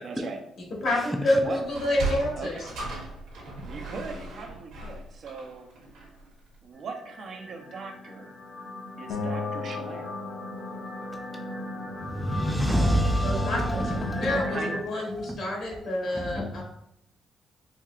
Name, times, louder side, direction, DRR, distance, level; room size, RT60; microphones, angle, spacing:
voice 1, 0.0-0.4 1.3-1.6 2.3-2.6 3.6-5.7 6.6-8.3 9.0-10.1 14.3-14.8, right 4 dB, 60° right, 4 dB, 0.7 m, -39 dB
voice 2, 0.8-2.7 13.2-13.8 14.2-16.6, left 1 dB, 65° left, -2 dB, 1.5 m, -28 dB
Sliding door, 1.6-6.3, right 2 dB, 90° right, 1.2 m, -36 dB
sound 1, 6.9-14.8, left 1 dB, 45° left, 0.9 m, -36 dB
Acoustic guitar, 9.1-12.3, left 4 dB, 80° left, 0.6 m, -37 dB
voice 3, 12.0-14.4 15.2-15.4 16.1-16.6, equal, ahead, 3 dB, 0.5 m, -27 dB
4.4 x 2.8 x 2.4 m, 0.78 s
cardioid pair, 90°, 0 cm